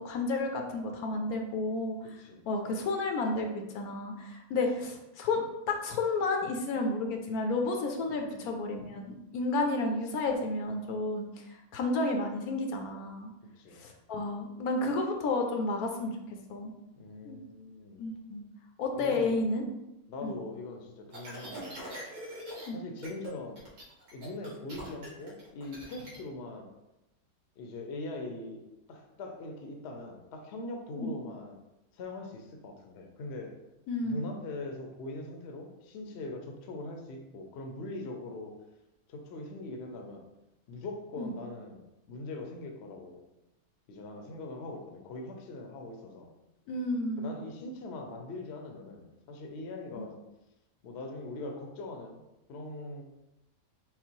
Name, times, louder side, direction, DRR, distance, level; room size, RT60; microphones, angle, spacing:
voice 1, 0.0-2.0 2.5-11.3 11.7-13.3 13.7-16.2 16.5-16.7 17.2-17.4 18.0-18.4 18.8-19.6 20.2-20.4 22.7-22.8 31.0-31.1 33.9-34.3 41.2-41.3 46.7-47.3 49.9-50.0, left 2 dB, 80° left, 3 dB, 1.2 m, -31 dB
voice 2, 2.2-2.5 8.1-8.5 13.5-13.8 17.0-18.1 19.0-19.5 20.1-21.8 22.7-23.6 24.1-26.7 27.6-31.6 31.9-33.6 34.0-38.6 39.1-40.3 40.7-43.2 43.9-46.3 47.2-50.2 50.8-52.2 52.5-53.0, left 2 dB, 55° left, 3 dB, 0.8 m, -42 dB
sound 1, 21.1-22.7 23.0-23.3 23.6-26.2, right 1 dB, 75° right, 1.8 m, -43 dB
5.5 x 2.1 x 4.5 m, 0.93 s
omnidirectional pair, 1.6 m